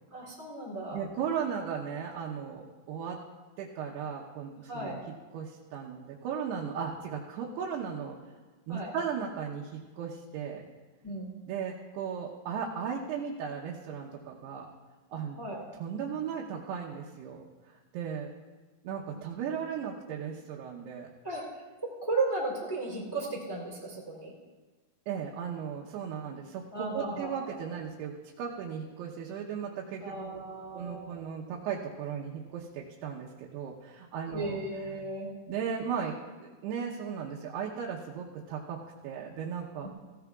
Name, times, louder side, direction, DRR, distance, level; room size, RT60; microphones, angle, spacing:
voice 1, 0.1-1.0 4.7-5.0 8.7-8.9 11.0-11.4 15.4-15.6 21.2-21.4 21.8-24.3 26.7-27.5 30.0-31.2 34.3-35.3 39.8-39.9, right 2 dB, 5° left, -3 dB, 2.5 m, -35 dB
voice 2, 0.9-3.2 3.6-5.0 5.3-8.2 8.7-10.6 11.5-14.7 15.1-15.5 15.8-17.4 17.9-18.3 18.8-21.1 25.1-30.4 30.7-34.6 35.5-36.2 36.4-39.9, right 7 dB, 85° right, -2 dB, 3.0 m, -36 dB
18.5 x 15.5 x 2.4 m, 1.3 s
omnidirectional pair, 4.6 m